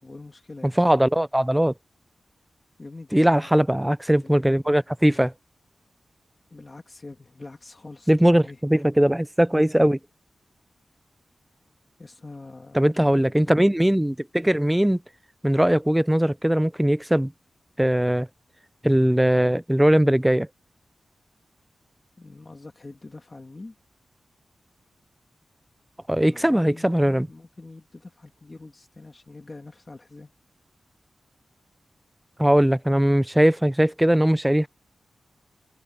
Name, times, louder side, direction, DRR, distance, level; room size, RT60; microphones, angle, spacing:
voice 1, 0.0-0.8 2.8-3.6 4.2-4.4 6.5-8.6 12.0-13.5 22.2-23.8 26.1-30.3, left 2 dB, 25° left, 2.0 m, -43 dB
voice 2, 0.6-1.7 3.1-5.3 8.1-10.0 12.7-15.0 15.4-17.3 17.8-18.3 18.8-20.5 26.1-27.3 32.4-34.7, right 1 dB, 5° right, 0.4 m, -20 dB
wide cardioid pair, 175°, 0 cm